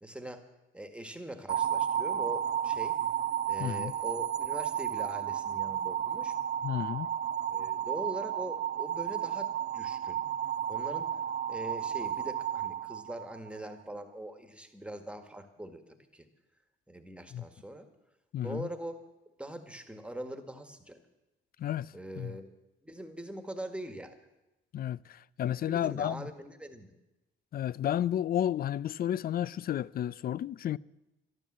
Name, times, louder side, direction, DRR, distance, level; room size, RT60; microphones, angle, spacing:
voice 1, 0.0-0.5 0.7-3.0 3.5-6.3 7.5-10.2 10.7-11.1 11.5-16.3 16.9-17.9 18.4-19.0 19.4-21.0 21.9-22.5 22.8-24.2 25.7-26.9, right 1 dB, 5° right, 1.7 m, -42 dB
sound 1, 1.5-13.7, right 10 dB, 60° right, 1.2 m, -33 dB
voice 2, 3.6-3.9 6.6-7.1 17.3-17.4 18.3-18.7 21.6-22.3 24.7-26.3 27.5-30.8, left 11 dB, 50° left, 0.4 m, -32 dB
12.5 x 12.5 x 7.4 m
cardioid pair, 90°, 20 cm